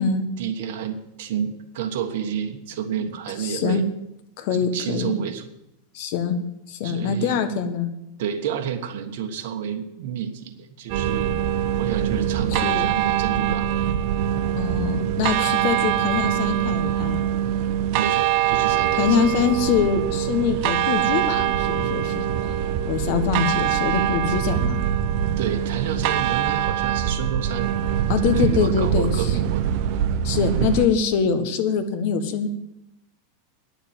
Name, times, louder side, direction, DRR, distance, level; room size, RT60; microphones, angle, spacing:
voice 1, 0.4-3.8 4.5-5.5 6.8-7.4 8.2-11.3 11.8-13.7 15.4-15.6 17.9-19.5 25.4-27.7 28.2-29.8, right 8 dB, 65° right, 4 dB, 1.4 m, -30 dB
voice 2, 3.4-3.8 4.4-5.1 5.9-6.4 6.7-7.9 12.5-12.9 14.6-17.2 19.0-22.2 22.9-24.8 28.1-29.4 30.2-32.5, left 6 dB, 55° left, 8 dB, 1.5 m, -24 dB
sound 1, 10.9-30.9, right 10 dB, 50° right, 0.9 m, -23 dB
10.0 x 7.3 x 8.9 m, 0.85 s
supercardioid pair, 155°, 0 cm